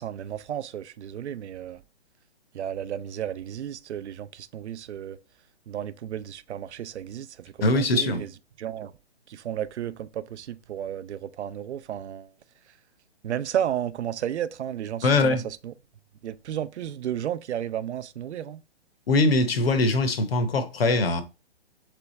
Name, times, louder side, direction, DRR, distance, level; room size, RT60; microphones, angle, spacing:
voice 1, 0.0-1.8 2.5-5.2 5.7-8.3 8.6-8.9 9.3-12.3 13.2-15.7 16.2-18.6, right 10 dB, 75° right, 0.5 m, -33 dB
voice 2, 7.6-8.3 15.0-15.5 19.1-21.2, left 2 dB, 60° left, 0.9 m, -22 dB
3.4 x 3.4 x 4.0 m
hypercardioid pair, 175°, 34 cm